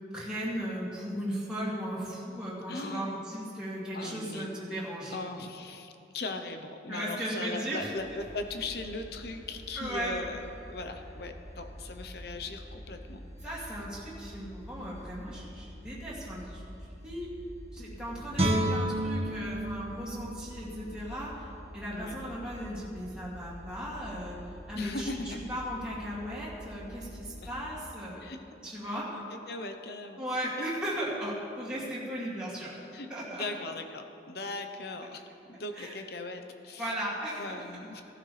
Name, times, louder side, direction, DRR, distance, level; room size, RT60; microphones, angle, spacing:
voice 1, 0.1-5.2 6.9-7.9 9.8-10.1 13.4-16.6 17.0-17.3 17.7-24.4 24.7-28.2 28.6-29.1 30.2-32.8 33.1-33.4 35.8-36.0 36.8-37.4, equal, 5° right, -9 dB, 2.6 m, -36 dB
voice 2, 2.7-3.2 3.9-4.5 5.1-13.2 13.6-13.7 21.9-22.2 24.7-25.4 27.4-27.5 28.2-28.4 28.9-30.2 32.9-37.0 37.4-38.0, left 2 dB, 55° left, 6 dB, 0.8 m, -39 dB
sound 1, 7.9-27.8, equal, 20° left, 3.4 m, -47 dB
Guitar, 18.3-21.5 21.9-22.1, right 1 dB, 30° right, 1.5 m, -31 dB
17.0 x 11.5 x 3.4 m, 2.7 s
head